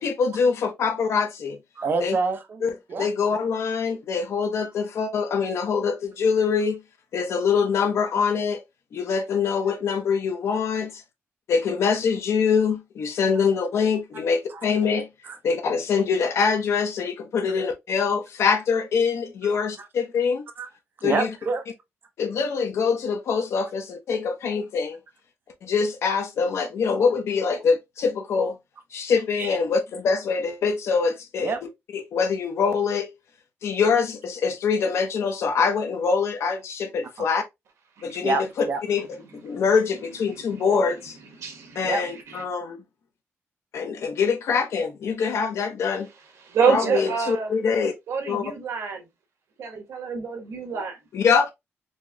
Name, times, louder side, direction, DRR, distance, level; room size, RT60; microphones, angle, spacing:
voice 1, 0.0-1.6 2.0-2.2 2.6-2.7 3.0-6.8 7.1-8.6 8.9-11.0 11.5-15.1 15.4-20.5 21.0-21.3 22.2-25.0 25.6-28.6 28.9-31.5 31.9-33.1 33.6-37.4 38.0-38.3 38.9-39.1 39.3-41.2 41.7-42.8 43.7-46.1 46.7-47.9 48.3-48.4 51.1-51.5, left 5 dB, 75° left, 0.9 m, -24 dB
voice 2, 1.8-2.6 2.9-3.1 14.5-14.6 15.2-15.4 20.6-20.7 21.0-21.6 29.4-29.6 31.4-31.6 38.2-38.8 41.8-42.0 46.8-47.0, right 4 dB, 50° right, 0.8 m, -27 dB
voice 3, 41.4-41.9 42.3-42.4 46.4-47.5 48.1-49.0 49.6-51.0, right 6 dB, 85° right, 1.3 m, -27 dB
4.4 x 2.9 x 2.3 m
wide cardioid pair, 145°, 5 cm